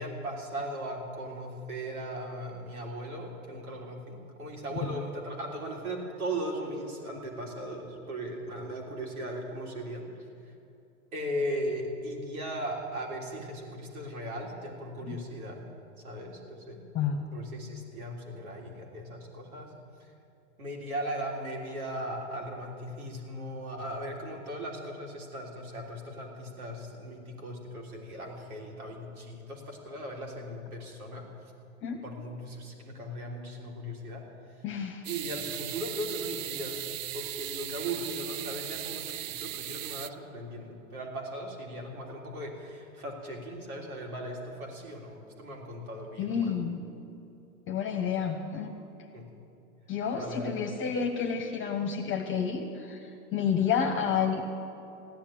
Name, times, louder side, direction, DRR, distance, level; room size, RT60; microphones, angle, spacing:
voice 1, 0.0-10.1 11.1-15.7 16.0-16.8 17.3-19.7 20.6-31.3 32.0-34.2 35.0-36.8 37.1-46.5 49.1-49.3 50.1-50.6, right 1 dB, 80° right, 0 dB, 3.4 m, -38 dB
voice 2, 16.9-17.3 31.8-32.0 34.6-35.1 46.2-46.8 47.7-48.7 49.9-54.4, left 7 dB, 30° left, 4 dB, 1.5 m, -30 dB
sound 1, 35.0-40.1, right 13 dB, 60° right, 0.6 m, -37 dB
15.0 x 10.5 x 8.7 m, 2.7 s
hypercardioid pair, 105°, 43 cm